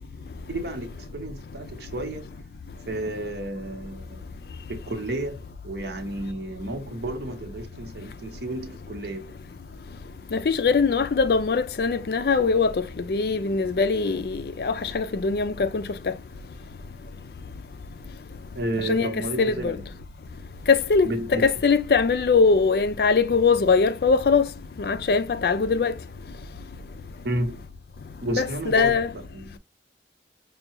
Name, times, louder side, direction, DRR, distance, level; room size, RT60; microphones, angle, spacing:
voice 1, 0.5-2.2 2.9-4.2 4.7-5.4 5.6-9.2 18.6-19.7 21.0-21.4 27.2-27.5 28.2-28.9 29.3-29.6, right 1 dB, 70° right, 0.9 m, -31 dB
voice 2, 10.3-16.1 18.8-19.1 19.4-19.8 20.7-24.5 24.8-25.9 28.3-29.1, left 4 dB, 60° left, 0.4 m, -22 dB
5.4 x 2.3 x 2.8 m
head